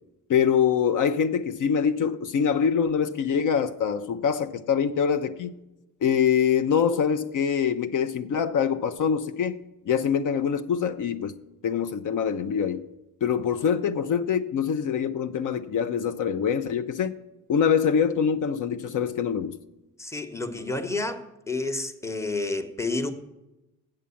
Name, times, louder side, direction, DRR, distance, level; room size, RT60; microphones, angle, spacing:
voice 1, 0.3-5.6 6.0-9.6 9.9-11.4 11.6-12.9 13.2-17.2 17.5-19.6, left 7 dB, 65° left, 0.6 m, -24 dB
voice 2, 20.0-23.1, left 2 dB, 10° left, 0.9 m, -30 dB
7.7 x 7.4 x 6.9 m
cardioid pair, 95°, 34 cm